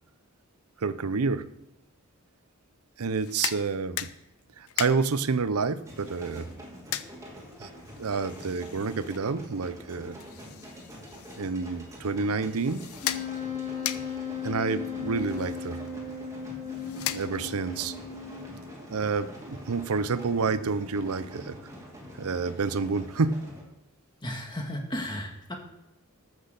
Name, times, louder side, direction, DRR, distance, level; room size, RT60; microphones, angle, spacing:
voice 1, 0.8-1.5 3.0-4.1 4.6-6.5 7.6-7.7 8.0-10.2 11.4-12.9 14.4-15.8 17.1-18.0 18.9-21.6 22.2-23.6, right 4 dB, 80° right, 15 dB, 0.6 m, -29 dB
sound 1, 3.1-17.7, left 11 dB, 75° left, 0.6 m, -40 dB
sound 2, 5.9-23.6, equal, 15° right, 2.5 m, -45 dB
Wind instrument woodwind instrument, 13.0-18.7, left 6 dB, 45° left, 3.5 m, -36 dB
voice 2, 24.2-25.5, equal, 20° left, 2 dB, 1.7 m, -35 dB
13.5 x 6.2 x 6.5 m, 0.86 s
head